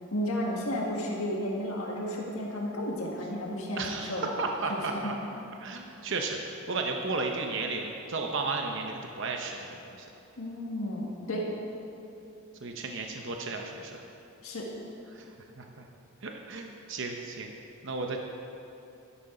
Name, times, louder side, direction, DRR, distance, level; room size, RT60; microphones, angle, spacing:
voice 1, 0.1-4.3 4.7-4.8 10.4-11.5 14.4-14.7, left 1 dB, 70° left, -2 dB, 1.7 m, -33 dB
voice 2, 3.8-5.1 5.6-10.1 12.6-14.0 15.1-15.3 15.6-15.9 16.2-17.5 17.8-18.2, right 3 dB, 55° right, 2 dB, 0.8 m, -34 dB
12.5 x 11.5 x 3.8 m, 2.8 s
head